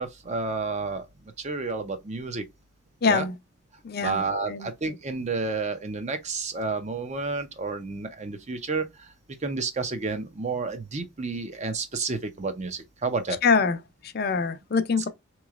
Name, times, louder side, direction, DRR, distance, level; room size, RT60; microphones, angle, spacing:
voice 1, 0.0-2.5 3.0-3.3 4.0-9.1 9.4-13.4, right 3 dB, 35° right, 0.6 m, -30 dB
voice 2, 3.0-3.4 3.8-4.7 13.4-13.8 14.0-15.1, left 5 dB, 50° left, 0.5 m, -24 dB
3.8 x 3.0 x 2.4 m
head